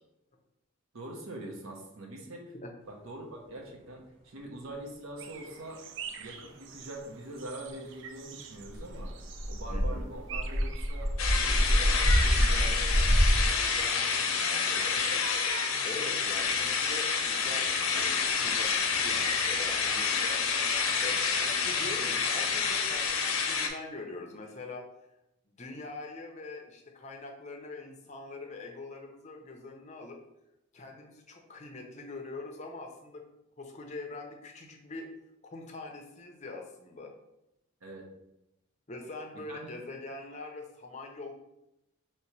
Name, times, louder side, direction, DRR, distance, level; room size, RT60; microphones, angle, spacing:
voice 1, 0.9-2.5 2.9-5.8 6.2-9.1 9.5-15.3 37.8-38.1 39.5-39.7, right 1 dB, 80° right, 0 dB, 0.9 m, -44 dB
sound 1, 5.2-13.1, right 7 dB, 60° right, 0.4 m, -46 dB
sound 2, 8.6-13.5, equal, 30° right, 0.8 m, -26 dB
voice 2, 9.7-10.1 15.8-20.1 21.0-24.9 25.5-30.2 30.7-33.2 33.6-35.1 35.5-37.1 38.9-41.3, left 2 dB, 35° left, 2 dB, 0.6 m, -43 dB
sound 3, 11.2-23.7, left 5 dB, 80° left, 0.6 m, -28 dB
3.0 x 2.9 x 4.5 m, 0.87 s
head